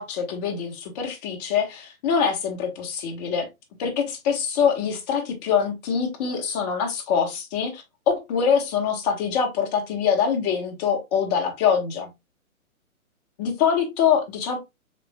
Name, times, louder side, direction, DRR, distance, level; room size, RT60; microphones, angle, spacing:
voice 1, 0.0-3.5 3.8-12.1 13.4-14.6, left 7 dB, 30° left, 1.4 m, -24 dB
5.1 x 4.2 x 2.2 m
hypercardioid pair, 140°, 43 cm